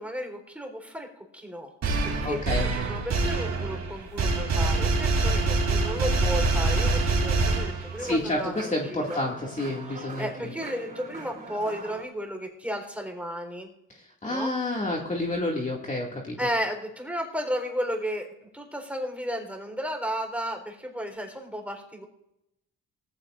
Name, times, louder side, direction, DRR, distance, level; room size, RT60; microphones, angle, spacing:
voice 1, 0.0-1.7 2.0-9.2 9.9-13.7 14.3-14.5 16.4-22.1, equal, 5° right, 2 dB, 4.0 m, -33 dB
sound 1, 1.8-8.2, right 3 dB, 60° right, 3.1 m, -25 dB
voice 2, 2.2-2.7 8.0-10.3 13.9-16.4, left 1 dB, 25° left, -1 dB, 2.3 m, -29 dB
sound 2, 4.8-12.0, right 3 dB, 25° right, 3.4 m, -43 dB
19.5 x 15.0 x 2.6 m, 0.83 s
cardioid pair, 90°, 30 cm